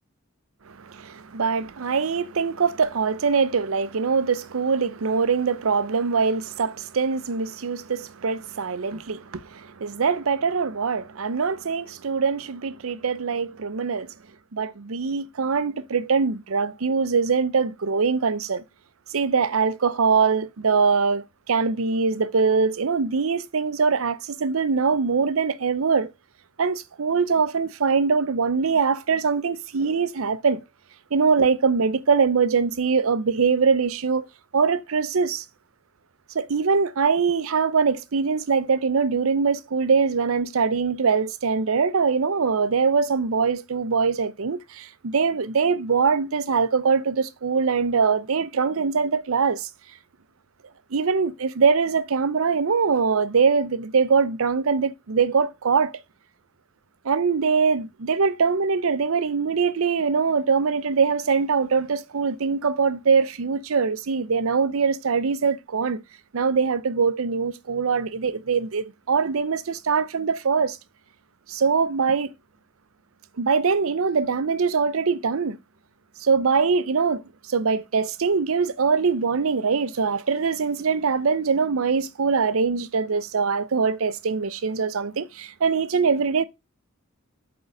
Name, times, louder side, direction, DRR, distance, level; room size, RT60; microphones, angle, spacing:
voice 1, 0.8-14.1 14.5-18.6 19.1-26.1 26.6-30.6 31.1-35.4 36.3-49.7 50.9-55.9 57.0-66.0 66.3-70.8 71.5-72.3 73.4-75.6 76.2-77.2 77.5-86.4, right 5 dB, 75° right, 0.6 m, -23 dB
8.1 x 3.8 x 5.0 m
head